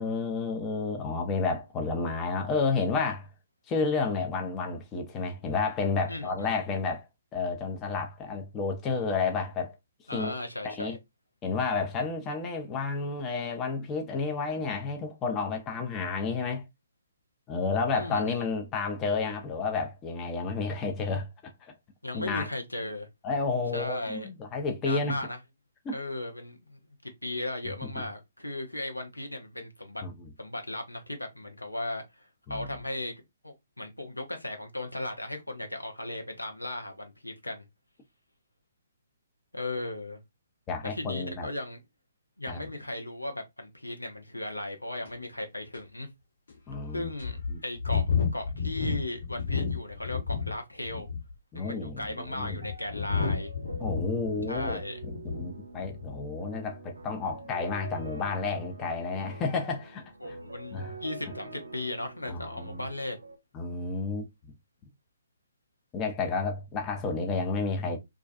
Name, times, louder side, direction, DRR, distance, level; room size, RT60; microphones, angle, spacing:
voice 1, 0.0-3.3 3.7-7.1 7.3-9.8 10.1-10.4 10.6-11.0 11.4-16.6 17.5-21.7 22.1-22.5 23.2-25.2 25.8-26.0 30.0-30.3 32.5-32.7 40.7-41.5 42.5-42.6 46.7-47.1 47.5-47.6 51.5-52.6 53.8-60.4 60.7-60.9 62.3-62.8 63.5-64.5 65.9-68.0, left 4 dB, 20° left, 0.5 m, -31 dB
voice 2, 6.1-6.5 10.1-11.0 17.9-18.4 22.0-23.1 23.7-24.3 24.8-25.4 25.9-30.0 30.4-33.1 33.4-37.6 39.5-40.2 40.9-41.8 42.4-46.1 46.9-51.1 51.5-53.5 54.5-55.0 60.2-63.2, left 1 dB, 85° left, 0.6 m, -36 dB
sound 1, 45.0-45.1 45.7-45.8 46.5-46.6 47.2-50.5 50.8-51.3 52.0-55.5 55.8-56.1, left 5 dB, 65° left, 1.2 m, -31 dB
sound 2, 52.6-63.4, right 3 dB, 70° right, 0.5 m, -46 dB
2.3 x 2.2 x 2.5 m
figure-of-eight pair, 130°, 0 cm